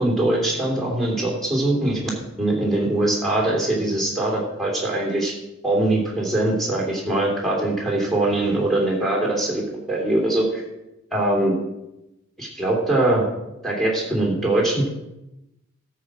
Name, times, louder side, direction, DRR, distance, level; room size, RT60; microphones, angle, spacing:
voice 1, 0.0-2.0 2.4-5.3 5.6-10.6 11.1-11.5 12.4-13.3 13.6-15.0, right 1 dB, ahead, -2 dB, 3.0 m, -22 dB
12.5 x 4.9 x 7.5 m, 0.93 s
head